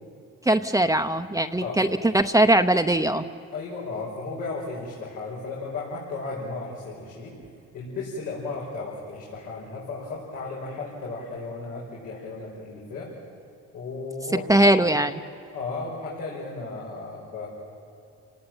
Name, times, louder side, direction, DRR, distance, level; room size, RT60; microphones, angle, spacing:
voice 1, 0.5-1.9 2.1-3.2 14.5-15.1, right 1 dB, 10° right, 6 dB, 0.8 m, -20 dB
voice 2, 3.5-7.3 7.7-13.1 13.7-14.9 15.5-17.5, left 3 dB, 90° left, -5 dB, 5.3 m, -35 dB
29.5 x 19.0 x 8.9 m, 2.7 s
cardioid pair, 90°, 30 cm